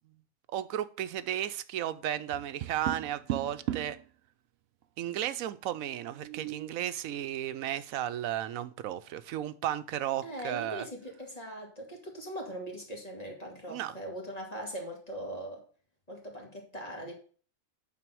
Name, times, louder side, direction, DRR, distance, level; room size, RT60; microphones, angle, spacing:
voice 1, 0.5-4.0 5.0-10.9 13.7-13.9, right 11 dB, 85° right, 1.0 m, -34 dB
Tap, 2.3-4.0 6.0-6.8, right 12 dB, 65° right, 0.7 m, -36 dB
voice 2, 10.2-15.6 16.1-17.1, right 1 dB, 30° left, 2.3 m, -40 dB
9.0 x 4.1 x 6.2 m
omnidirectional pair, 1.4 m